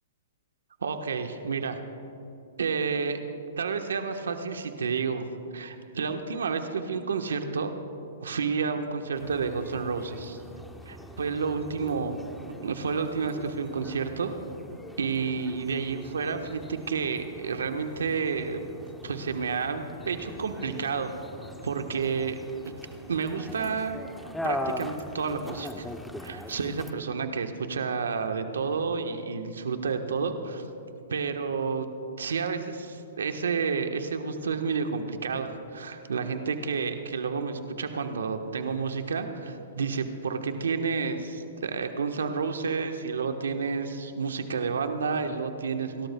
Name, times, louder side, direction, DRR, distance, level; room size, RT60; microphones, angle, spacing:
voice 1, 0.8-1.8 2.6-3.2 3.6-5.3 5.5-7.7 8.2-10.4 10.8-12.2 12.6-14.3 15.0-18.6 19.0-21.1 21.6-22.4 22.6-22.7 23.1-23.9 24.4-25.9 26.2-30.6 31.1-31.9 32.2-46.1, right 5 dB, 85° right, 6 dB, 1.2 m, -30 dB
sound 1, 9.2-26.9, left 1 dB, 5° left, 0.8 m, -41 dB
29.5 x 13.0 x 2.3 m, 2.7 s
hypercardioid pair, 135°, 0 cm